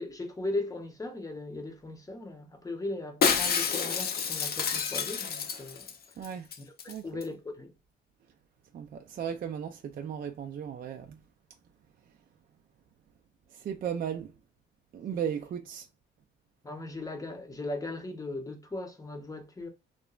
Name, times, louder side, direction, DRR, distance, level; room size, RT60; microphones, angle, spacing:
voice 1, 0.0-5.9 7.0-7.7 15.1-15.2 16.6-19.7, left 2 dB, 15° left, 0.8 m, -38 dB
Shatter, 3.2-6.0 6.2-6.3 6.5-6.9 7.2-7.3, left 6 dB, 50° left, 0.5 m, -29 dB
voice 2, 6.2-6.5 6.9-7.1 8.7-11.2 13.5-14.3 14.9-15.9, right 8 dB, 45° right, 0.4 m, -36 dB
3.0 x 2.1 x 2.3 m
cardioid pair, 90°, 20 cm